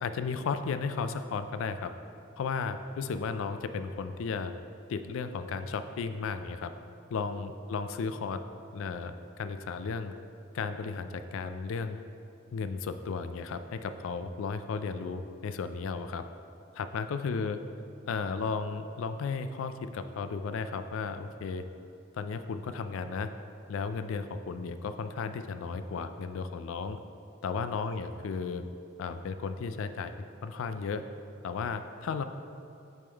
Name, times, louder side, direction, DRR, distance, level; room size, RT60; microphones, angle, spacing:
voice 1, 0.0-1.9 2.4-4.5 4.9-6.7 7.1-8.4 8.7-10.1 10.5-12.0 12.5-16.2 16.7-17.6 18.1-21.6 22.1-23.3 23.7-27.0 27.4-28.6 29.0-30.1 30.4-31.0 31.4-32.2, left 5 dB, 75° left, 10 dB, 0.3 m, -34 dB
8.3 x 3.6 x 3.4 m, 2.6 s
head